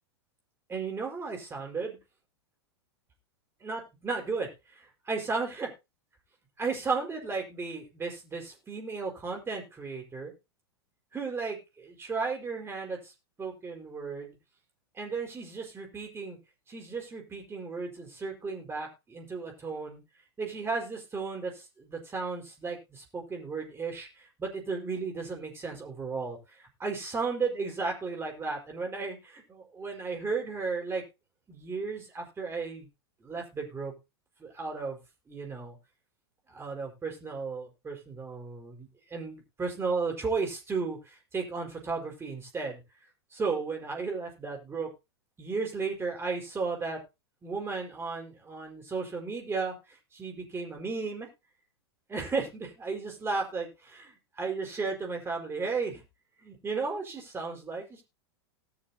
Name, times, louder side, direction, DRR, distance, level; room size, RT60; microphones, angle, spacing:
voice 1, 0.7-2.0 3.6-5.7 6.6-10.3 11.1-13.1 13.4-14.4 14.9-16.4 16.7-20.0 20.4-31.0 31.5-32.9 33.2-33.9 34.4-35.0 35.3-35.8 36.5-42.8 43.3-44.9 45.4-47.0 47.4-51.3 52.1-56.0 56.4-58.0, right 4 dB, 15° right, 1 dB, 4.8 m, -34 dB
19.0 x 6.9 x 2.8 m, 0.25 s
hypercardioid pair, 105°, 14 cm